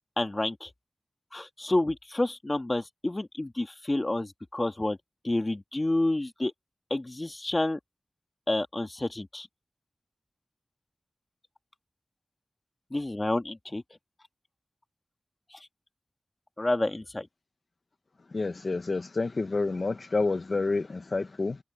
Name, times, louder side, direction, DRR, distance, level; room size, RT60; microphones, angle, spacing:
voice 1, 0.2-0.7 1.3-5.0 5.2-6.5 6.9-7.8 8.5-9.5 12.9-13.8 15.5-15.6 16.6-17.3, left 2 dB, 35° left, 1.8 m, -29 dB
voice 2, 18.3-21.6, left 3 dB, 70° left, 0.7 m, -29 dB
open air
cardioid pair, 40°, 0 cm